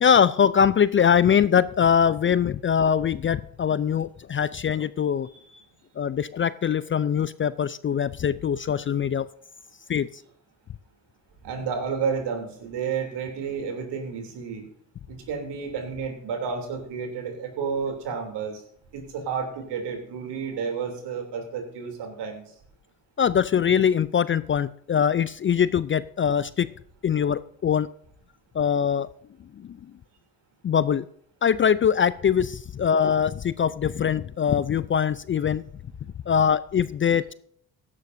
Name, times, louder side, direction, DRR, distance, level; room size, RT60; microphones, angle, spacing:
voice 1, 0.0-5.3 6.0-9.3 9.9-10.1 23.2-26.7 27.0-27.9 28.5-29.1 29.6-29.8 30.6-31.1 31.4-35.6 36.3-37.3, left 8 dB, 30° left, 17 dB, 0.5 m, -22 dB
voice 2, 11.4-14.7 15.1-18.6 18.9-22.4, right 6 dB, 65° right, 4 dB, 3.3 m, -31 dB
15.5 x 12.0 x 2.7 m, 0.66 s
hypercardioid pair, 55°, 44 cm